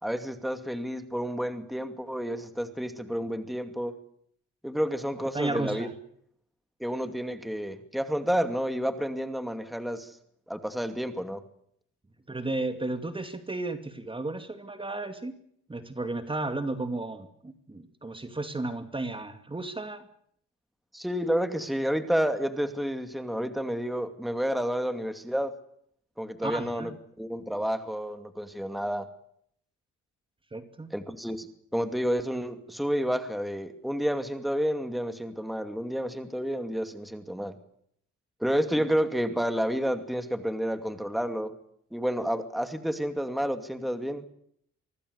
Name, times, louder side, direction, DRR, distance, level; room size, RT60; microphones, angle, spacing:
voice 1, 0.0-3.9 4.6-5.9 6.8-10.1 10.5-11.4 20.9-25.5 26.2-26.9 27.2-29.1 30.9-37.6 38.4-41.5 41.9-44.3, equal, ahead, 8 dB, 2.5 m, -30 dB
voice 2, 5.3-5.9 12.3-15.3 15.7-20.0 26.4-26.9 30.5-30.9, right 2 dB, 15° right, 8 dB, 2.4 m, -33 dB
25.0 x 19.0 x 8.2 m, 0.68 s
cardioid pair, 90°, 30 cm